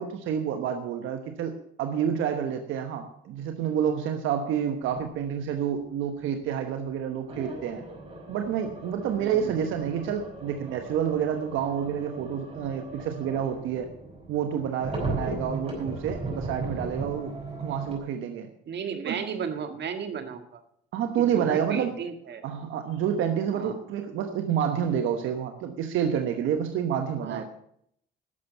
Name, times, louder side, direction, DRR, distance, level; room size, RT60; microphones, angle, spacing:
voice 1, 0.0-7.8 8.3-13.9 14.3-17.3 17.6-18.5 19.0-19.2 20.9-21.9 22.4-27.4, right 8 dB, 90° right, 5 dB, 1.2 m, -29 dB
sound 1, 4.8-5.1 7.3-18.0, right 2 dB, 30° right, 5.1 m, -37 dB
voice 2, 9.2-9.6 18.7-20.6 21.3-22.4 23.5-23.8 27.2-27.4, right 7 dB, 60° right, 7 dB, 1.9 m, -34 dB
11.5 x 7.2 x 8.0 m, 0.68 s
cardioid pair, 90°, 20 cm